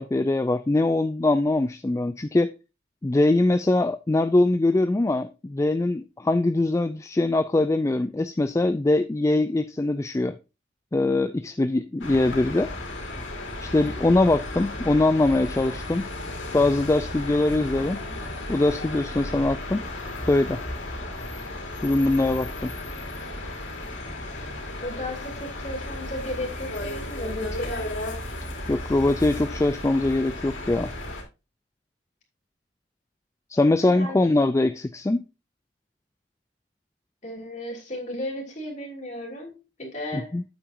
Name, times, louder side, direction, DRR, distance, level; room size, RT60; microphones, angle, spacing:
voice 1, 0.0-2.5 3.0-10.3 10.9-12.7 13.6-16.1 16.5-18.0 18.5-19.9 20.3-20.6 21.8-22.7 28.7-30.9 33.5-35.2 40.1-40.4, left 2 dB, 15° left, 0.3 m, -22 dB
sound 1, 12.0-31.2, left 1 dB, 90° left, 3.2 m, -34 dB
voice 2, 24.8-27.9 33.7-34.3 37.2-40.4, left 1 dB, 40° left, 3.1 m, -35 dB
8.9 x 8.4 x 2.6 m
head